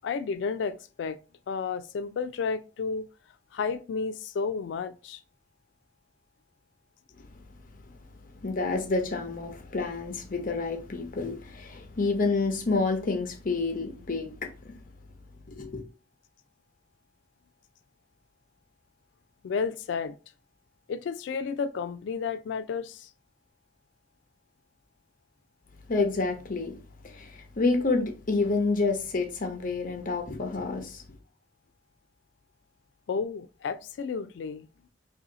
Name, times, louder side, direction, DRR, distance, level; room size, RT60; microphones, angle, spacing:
voice 1, 0.0-1.2 1.5-3.0 3.5-5.2 19.4-20.2 20.9-23.1 33.1-34.7, left 5 dB, 80° left, 0.3 m, -32 dB
voice 2, 8.4-14.8 15.5-15.8 25.9-26.7 27.0-31.0, left 3 dB, 50° left, 0.8 m, -29 dB
2.8 x 2.7 x 3.9 m
head